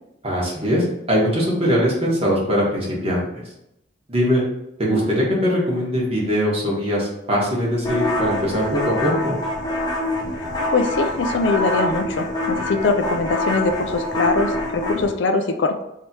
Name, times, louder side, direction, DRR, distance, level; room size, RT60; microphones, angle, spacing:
voice 1, 0.2-3.2 4.1-4.4 4.8-9.4, equal, 30° right, -5 dB, 1.3 m, -21 dB
sound 1, 7.8-15.1, left 1 dB, 20° left, 0.8 m, -25 dB
voice 2, 10.7-15.8, left 3 dB, 70° left, 6 dB, 0.4 m, -22 dB
3.2 x 2.8 x 4.6 m, 0.83 s
head